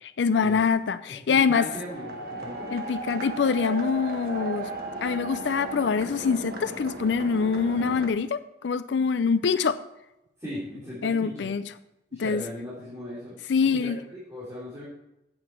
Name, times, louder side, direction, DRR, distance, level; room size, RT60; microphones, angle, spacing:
voice 1, 0.2-1.7 2.7-4.7 5.0-9.8 11.0-11.7 12.1-12.4 13.5-14.0, left 5 dB, 80° left, 13 dB, 0.4 m, -24 dB
voice 2, 1.1-2.7 10.4-11.5 12.1-13.4 13.7-14.8, equal, 15° right, -9 dB, 2.9 m, -38 dB
sound 1, 1.7-8.1, right 2 dB, 55° right, 1.6 m, -36 dB
8.7 x 8.6 x 4.4 m, 0.90 s
head